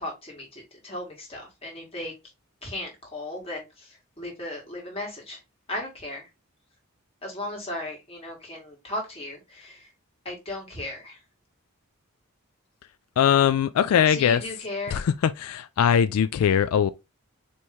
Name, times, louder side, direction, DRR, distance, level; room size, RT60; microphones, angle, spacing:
voice 1, 0.0-2.1 2.6-5.4 5.7-6.3 7.2-9.9 10.3-11.2 14.1-15.0, left 1 dB, 25° left, 1.7 m, -36 dB
voice 2, 13.2-14.4 14.9-16.9, left 8 dB, 85° left, 0.3 m, -21 dB
4.4 x 3.1 x 3.4 m
head